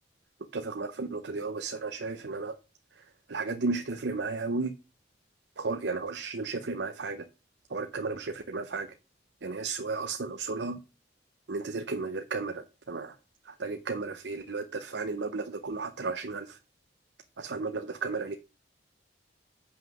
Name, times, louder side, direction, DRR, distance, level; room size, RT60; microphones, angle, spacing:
voice 1, 0.5-2.6 2.9-4.7 5.6-7.3 7.7-8.9 9.4-10.8 11.5-13.2 13.4-16.6 17.4-18.4, right 3 dB, 65° right, 0.7 m, -34 dB
7.9 x 5.7 x 6.0 m
head